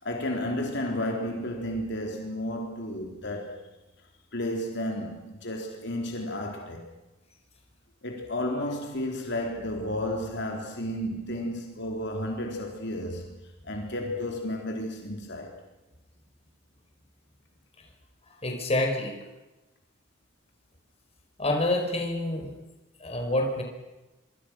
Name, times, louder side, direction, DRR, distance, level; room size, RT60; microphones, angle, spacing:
voice 1, 0.0-3.6 4.3-6.9 8.0-13.4 13.7-15.5, left 1 dB, 60° left, 3.9 m, -32 dB
voice 2, 18.4-19.2 21.4-22.5 23.0-23.6, left 1 dB, 30° left, 5.0 m, -27 dB
25.5 x 25.5 x 6.4 m
head